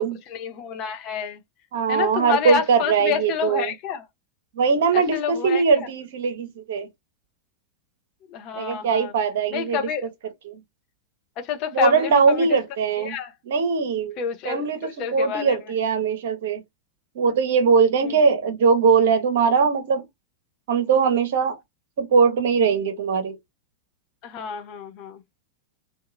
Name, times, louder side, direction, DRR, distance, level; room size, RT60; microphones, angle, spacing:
voice 1, 0.3-1.4 1.9-4.1 4.9-5.9 8.3-9.1 9.5-10.1 11.4-12.6 13.0-13.3 14.2-15.7 18.0-18.2 24.2-25.2, left 7 dB, 40° left, 0.7 m, -29 dB
voice 2, 1.7-3.7 4.6-6.9 8.6-9.8 10.5-10.6 11.7-13.2 13.5-14.2 14.4-16.6 17.1-20.1 20.7-21.6 22.0-23.4, right 5 dB, 55° right, 0.8 m, -21 dB
2.8 x 2.3 x 2.4 m
figure-of-eight pair, 90°, 0 cm